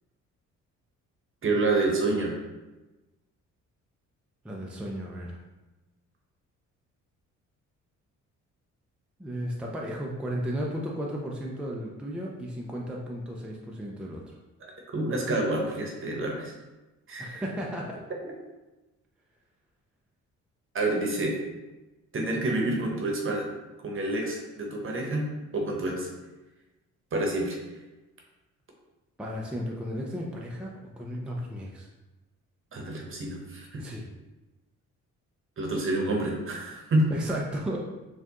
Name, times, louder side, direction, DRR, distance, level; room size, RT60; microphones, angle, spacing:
voice 1, 1.4-2.4 14.6-16.5 17.1-17.4 20.7-21.4 22.1-23.4 23.8-26.1 27.1-27.6 32.7-33.8 35.6-37.1, right 2 dB, 45° right, 0 dB, 1.0 m, -28 dB
voice 2, 4.4-5.4 9.2-14.2 17.2-18.0 29.2-31.9 33.8-34.0 37.1-37.8, equal, 5° right, -2 dB, 0.4 m, -34 dB
4.4 x 2.4 x 2.9 m, 1.1 s
cardioid pair, 90°, 30 cm